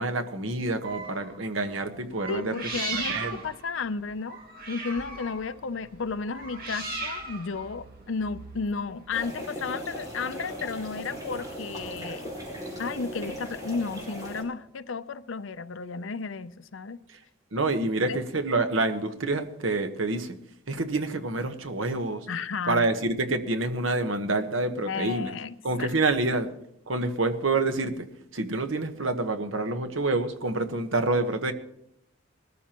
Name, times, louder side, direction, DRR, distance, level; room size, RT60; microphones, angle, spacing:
voice 1, 0.0-2.6 2.9-3.4 17.5-20.4 20.7-22.3 22.7-25.3 25.6-26.5 26.9-28.1 28.3-31.5, right 2 dB, 75° right, 1.2 m, -27 dB
sound 1, 0.8-1.4 2.1-9.2, right 3 dB, 50° right, 2.1 m, -38 dB
voice 2, 2.3-4.4 4.7-12.3 12.8-17.0 18.1-18.2 22.3-22.9 24.8-25.9, left 4 dB, 70° left, 0.6 m, -33 dB
sound 2, 9.1-14.4, equal, 20° right, 4.6 m, -38 dB
21.0 x 13.5 x 3.0 m
head